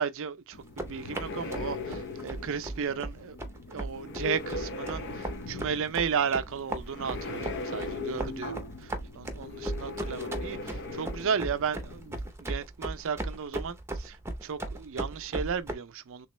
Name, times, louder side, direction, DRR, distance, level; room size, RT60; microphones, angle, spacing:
voice 1, 0.0-3.4 3.7-8.6 9.1-16.3, right 6 dB, 60° right, 0.5 m, -34 dB
sound 1, 0.5-12.3, left 3 dB, 50° left, 0.6 m, -39 dB
sound 2, 0.6-15.7, right 1 dB, 10° right, 0.6 m, -37 dB
3.4 x 2.9 x 3.1 m
head